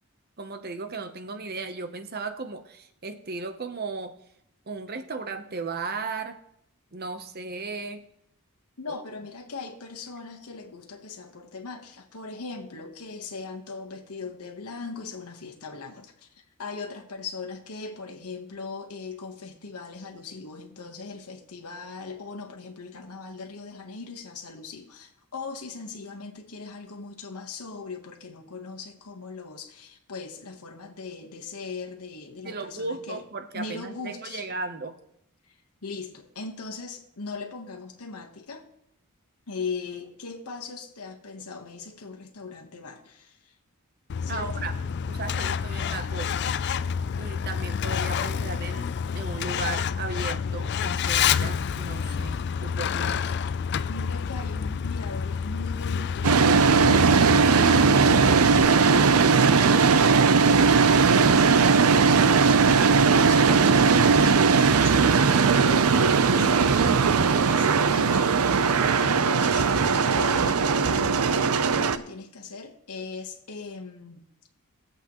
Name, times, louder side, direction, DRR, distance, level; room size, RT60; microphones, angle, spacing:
voice 1, 0.4-4.2 4.7-6.4 6.9-8.0 8.9-9.0 32.4-35.0 44.3-44.7 45.1-46.6 47.2-53.3, right 4 dB, 45° right, 0.9 m, -36 dB
voice 2, 8.8-33.2 33.5-34.5 35.4-35.6 35.8-38.7 39.5-43.6 44.2-44.7 53.9-69.7 70.1-74.3, left 4 dB, 80° left, 1.2 m, -39 dB
Truck, 44.1-58.6, left 7 dB, 50° left, 0.3 m, -28 dB
sound 1, 56.2-72.0, right 5 dB, 75° right, 0.6 m, -19 dB
21.0 x 7.9 x 3.1 m
head